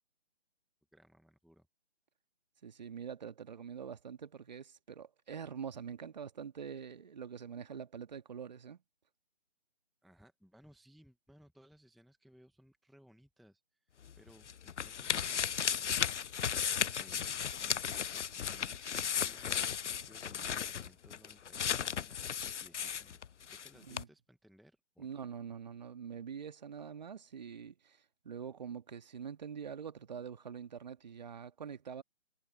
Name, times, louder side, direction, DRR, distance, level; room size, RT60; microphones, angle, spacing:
voice 1, 0.9-1.7 10.0-16.5 17.0-23.2 23.5-25.1, equal, ahead, 0.8 m, -62 dB
voice 2, 2.6-8.8 23.8-24.1 25.0-32.0, right 7 dB, 40° right, 1.9 m, -45 dB
sound 1, 14.0-23.7 23.9-24.0, left 8 dB, 90° left, 0.5 m, -35 dB
figure-of-eight pair, 155°, 34 cm